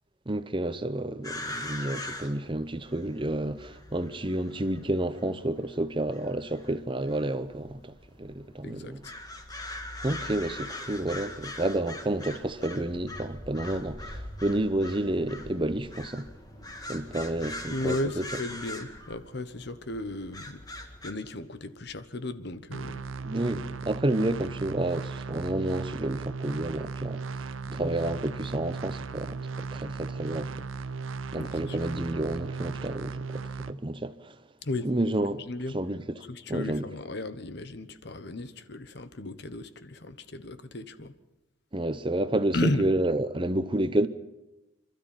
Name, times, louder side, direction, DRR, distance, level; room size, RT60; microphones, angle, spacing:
voice 1, 0.3-9.0 10.0-16.3 16.9-18.0 23.2-27.2 27.7-30.7 31.3-34.4 34.8-35.4 35.7-36.0 36.5-36.8 41.7-44.1, right 1 dB, 25° right, 0.8 m, -30 dB
sound 1, 1.2-21.1, left 1 dB, 20° left, 2.0 m, -42 dB
voice 2, 8.6-9.1 17.7-23.0 31.3-31.9 34.6-34.9 35.4-35.8 36.3-41.1 42.5-42.9, left 2 dB, 55° left, 1.2 m, -35 dB
sound 2, 22.7-33.7, right 4 dB, 85° right, 0.8 m, -36 dB
27.5 x 13.0 x 9.1 m
head